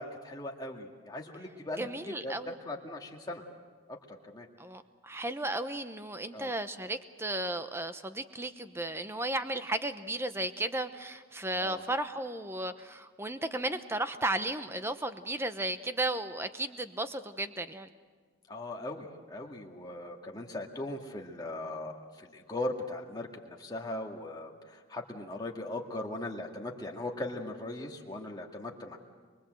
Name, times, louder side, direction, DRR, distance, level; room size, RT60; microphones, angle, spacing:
voice 1, 0.0-3.4 3.9-4.5 6.3-6.5 11.6-11.8 18.5-29.0, left 2 dB, 20° left, 0 dB, 2.1 m, -39 dB
voice 2, 1.8-2.5 4.6-17.9, right 1 dB, 10° right, 10 dB, 0.9 m, -34 dB
24.0 x 23.5 x 7.8 m, 1.5 s
head